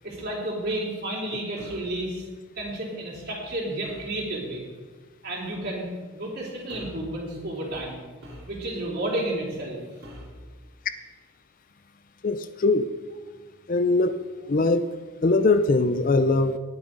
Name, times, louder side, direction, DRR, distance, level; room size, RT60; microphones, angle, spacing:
voice 1, 0.0-2.3 2.6-4.7 5.2-8.0 8.4-9.8, right 1 dB, 50° right, -4 dB, 3.6 m, -31 dB
sound 1, 1.6-2.0 3.8-4.2 5.4-5.7 6.7-7.1 8.2-8.9 10.0-10.4, equal, 80° right, 3.7 m, -44 dB
voice 2, 12.2-12.9 13.7-14.2 14.5-14.8 15.2-16.6, left 3 dB, 40° left, 10 dB, 0.4 m, -21 dB
19.5 x 7.1 x 3.9 m, 1.3 s
head